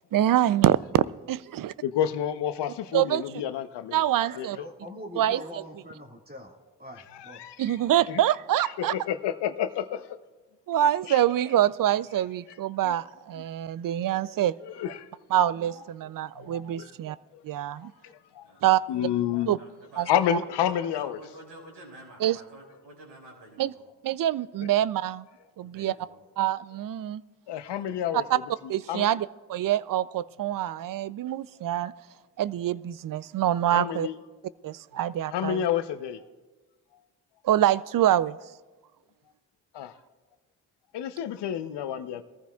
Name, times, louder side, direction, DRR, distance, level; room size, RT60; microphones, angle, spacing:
voice 1, 0.1-1.7 2.9-3.2 3.9-4.6 5.2-5.4 7.6-8.9 10.7-14.5 15.3-17.2 17.4-17.9 18.6-18.8 19.5-19.6 20.0-20.1 22.2-22.4 23.6-23.7 24.0-25.2 25.6-25.9 26.4-27.2 28.3-28.4 28.7-31.9 32.4-34.1 34.6-35.6 37.4-38.4, right 12 dB, 50° right, 19 dB, 0.5 m, -25 dB
voice 2, 1.8-4.0 4.3-4.5 7.2-7.8 8.1-8.2 8.8-10.1 11.1-11.2 12.8-12.9 14.7-15.1 16.4-16.9 17.3-17.4 18.0-18.4 18.9-19.6 20.1-21.2 27.5-28.2 28.9-29.1 33.7-34.2 35.3-36.2 39.7-39.9 40.9-42.2, left 10 dB, 70° left, 11 dB, 0.8 m, -29 dB
voice 3, 4.2-6.5 6.8-7.4, equal, 20° right, 0 dB, 1.9 m, -43 dB
voice 4, 18.4-19.1 19.3-23.8 25.6-26.2 27.6-28.4, right 1 dB, 70° right, -2 dB, 5.1 m, -50 dB
21.0 x 14.5 x 2.4 m, 1.3 s
supercardioid pair, 45°, 43 cm